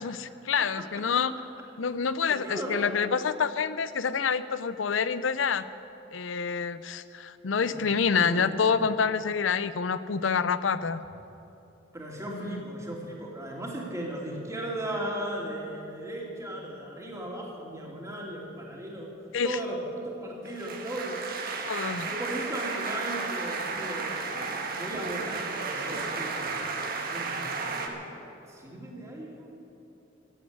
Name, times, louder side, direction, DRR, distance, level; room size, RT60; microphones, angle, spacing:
voice 1, 0.0-1.3 1.8-5.6 6.1-11.0 12.3-12.6 19.3-19.6 21.7-22.1, left 6 dB, 85° left, 14 dB, 0.6 m, -27 dB
voice 2, 0.6-1.0 1.8-1.9 2.3-2.9 7.6-8.7 11.9-19.1 19.4-21.6 22.0-26.5 27.0-28.0 28.5-29.5, right 1 dB, 15° right, -2 dB, 2.7 m, -37 dB
sound 1, 20.5-27.9, right 4 dB, 50° right, 1.5 m, -33 dB
15.0 x 8.7 x 9.5 m, 2.8 s
head